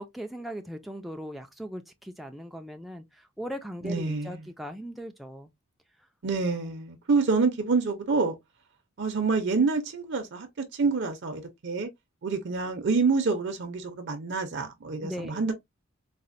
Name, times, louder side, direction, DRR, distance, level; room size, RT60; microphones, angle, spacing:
voice 1, 0.0-5.5 15.0-15.5, equal, ahead, 0.3 m, -39 dB
voice 2, 3.8-4.4 6.2-8.3 9.0-10.5 10.7-11.9 12.2-15.5, right 4 dB, 55° right, 0.6 m, -27 dB
4.0 x 2.1 x 2.5 m
head